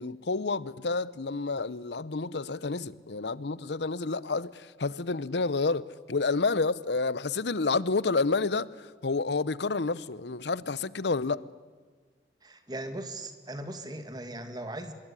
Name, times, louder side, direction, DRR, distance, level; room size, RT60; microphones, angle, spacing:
voice 1, 0.0-11.4, left 3 dB, 75° left, 0.8 m, -29 dB
voice 2, 12.4-14.9, right 1 dB, 25° right, 2.2 m, -38 dB
25.5 x 21.0 x 9.9 m
head